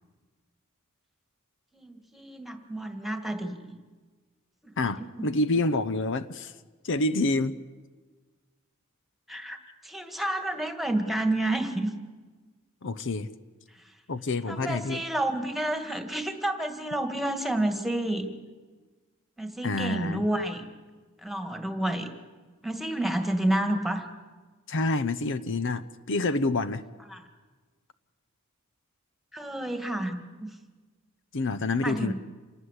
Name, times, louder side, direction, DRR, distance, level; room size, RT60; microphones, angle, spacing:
voice 1, 1.7-3.8 4.6-5.1 9.3-11.9 14.5-18.3 19.4-20.6 21.2-22.1 22.6-24.1 27.1-27.2 29.3-30.5 31.8-32.1, right 1 dB, ahead, 6 dB, 2.0 m, -30 dB
voice 2, 4.8-6.5 6.8-7.6 12.8-13.3 14.1-15.0 19.6-20.2 24.7-26.8 31.3-32.1, left 2 dB, 60° left, 13 dB, 0.8 m, -27 dB
27.5 x 19.5 x 8.2 m, 1.4 s
head